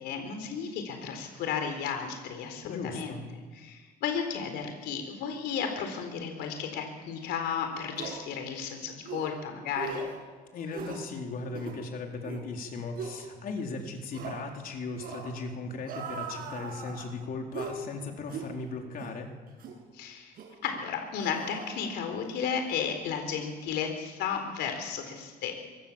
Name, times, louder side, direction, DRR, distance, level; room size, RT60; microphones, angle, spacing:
voice 1, 0.0-3.1 3.5-10.1 19.9-20.4 20.6-25.5, left 7 dB, 80° left, 5 dB, 3.9 m, -33 dB
voice 2, 2.6-3.2 10.5-19.3, left 3 dB, 55° left, 2 dB, 4.2 m, -37 dB
sound 1, 7.2-7.3 7.9-8.2 9.0-9.3 9.7-10.2 10.7-11.0 11.5-11.8 12.2-12.4 13.0-13.2 14.1-14.4 15.0-15.3 15.8-17.1 17.5-17.8 18.3-18.5 19.0-19.1 19.6-19.8 20.4-20.5 21.2-22.3 22.5-22.7, right 4 dB, 60° right, 6.8 m, -39 dB
26.0 x 23.0 x 7.4 m, 1.4 s
cardioid pair, 110°, 17 cm